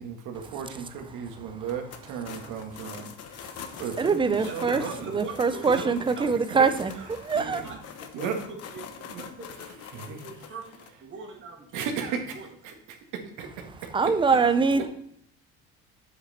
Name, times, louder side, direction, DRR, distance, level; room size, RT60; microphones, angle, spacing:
voice 1, 0.0-5.1 5.7-5.8 6.3-6.4 7.3-7.8 8.1-8.4 9.0-9.2 9.9-10.2 11.7-14.1, right 6 dB, 75° right, 4 dB, 1.8 m, -36 dB
sound 1, 1.6-10.9, left 8 dB, 50° left, 1.0 m, -44 dB
voice 2, 3.4-4.8 5.1-7.6 13.9-14.9, right 5 dB, 15° right, 11 dB, 0.6 m, -24 dB
voice 3, 4.4-6.6 6.9-8.8 9.1-12.5 14.3-14.9, right 3 dB, 40° right, 0 dB, 2.4 m, -41 dB
8.0 x 6.4 x 4.2 m, 0.70 s
cardioid pair, 125°, 31 cm